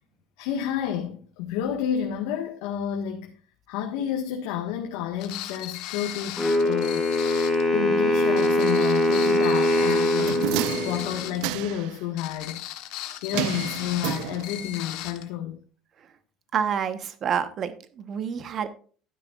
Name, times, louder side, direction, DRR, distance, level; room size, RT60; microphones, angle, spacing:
voice 1, 0.4-3.3 3.7-7.1 7.4-10.6 10.8-12.6 13.2-15.6, left 9 dB, 85° left, 1.6 m, -30 dB
sound 1, 5.2-7.7 8.4-11.5 12.2-15.2, left 14 dB, 65° left, 1.3 m, -37 dB
Wind instrument woodwind instrument, 6.4-11.4, left 1 dB, 5° left, 2.5 m, -22 dB
sound 2, 9.9-12.0 13.3-14.8 15.1-15.2, right 14 dB, 70° right, 0.6 m, -31 dB
voice 2, 16.5-18.7, right 7 dB, 35° right, 1.2 m, -28 dB
12.0 x 9.7 x 2.5 m
cardioid pair, 165°, 0 cm